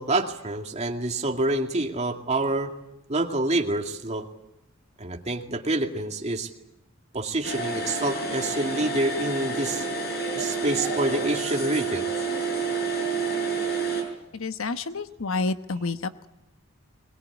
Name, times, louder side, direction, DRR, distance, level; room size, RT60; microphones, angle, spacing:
voice 1, 0.0-2.7 3.1-4.3 5.0-6.5 7.1-9.8 10.4-12.1, right 2 dB, 35° right, 4 dB, 2.2 m, -27 dB
sound 1, 7.4-14.0, right 3 dB, 50° left, 5.7 m, -29 dB
voice 2, 14.3-16.3, left 3 dB, 90° left, 11 dB, 1.1 m, -29 dB
21.5 x 21.5 x 9.6 m, 0.88 s
head